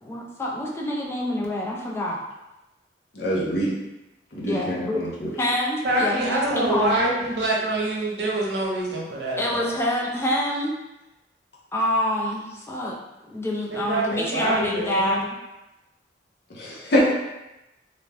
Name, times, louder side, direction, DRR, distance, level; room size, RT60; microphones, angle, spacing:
voice 1, 0.0-2.2 4.5-5.0 5.4-7.0 9.4-10.7 11.7-12.9 13.3-15.2, left 1 dB, 15° left, -3 dB, 0.4 m, -26 dB
voice 2, 3.2-3.7 4.3-5.3 16.6-17.1, equal, 65° left, -4 dB, 0.7 m, -24 dB
voice 3, 5.8-9.7 13.7-15.2, right 1 dB, 70° right, -3 dB, 0.7 m, -25 dB
2.5 x 2.2 x 3.3 m, 0.97 s
head